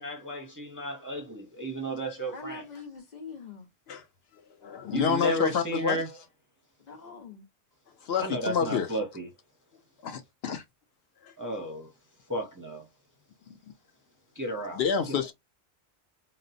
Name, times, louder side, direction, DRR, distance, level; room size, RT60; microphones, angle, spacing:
voice 1, 0.0-2.6 4.9-6.1 8.2-9.3 11.4-11.9 12.3-12.8 14.3-14.8 15.1-15.2, right 1 dB, 25° right, 0.5 m, -33 dB
voice 2, 2.3-3.7 6.8-7.4, left 4 dB, 40° left, 0.9 m, -43 dB
voice 3, 4.6-6.0 8.0-8.9 10.0-10.6 11.2-11.3 14.7-15.3, left 6 dB, 70° left, 0.8 m, -28 dB
3.9 x 2.0 x 2.5 m
omnidirectional pair, 1.2 m